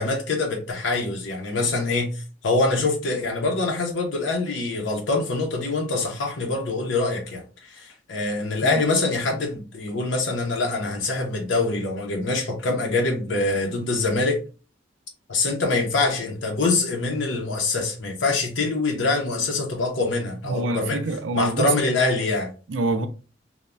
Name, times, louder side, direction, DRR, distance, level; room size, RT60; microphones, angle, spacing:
voice 1, 0.0-14.4 15.3-21.0 21.3-22.5, left 3 dB, 80° left, 0.6 m, -24 dB
voice 2, 20.5-21.7 22.7-23.1, right 2 dB, 80° right, 0.4 m, -26 dB
3.1 x 2.1 x 2.3 m
head